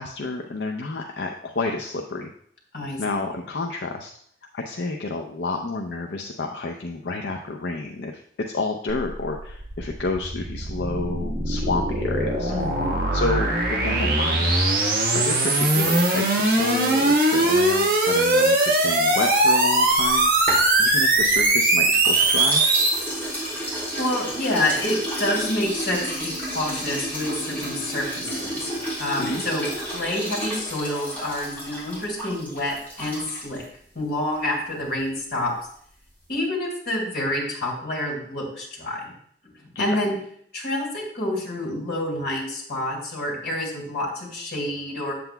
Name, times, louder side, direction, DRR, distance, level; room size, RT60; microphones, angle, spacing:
voice 1, 0.0-2.3 3.0-4.1 4.5-8.2 8.5-12.5 13.1-14.5 15.1-22.6 29.2-29.4 39.7-39.8, left 3 dB, 90° left, 2 dB, 0.6 m, -30 dB
sound 1, 8.9-23.0, right 2 dB, 55° right, 1.4 m, -21 dB
voice 2, 12.5-13.0 24.0-28.7 29.0-33.6 33.9-35.5 36.3-39.1 39.8-40.2 40.5-45.1, left 1 dB, 65° left, -2 dB, 2.7 m, -28 dB
sound 2, 19.9-21.5 21.9-33.6, equal, 10° left, 3.0 m, -32 dB
7.9 x 7.6 x 2.3 m, 0.64 s
head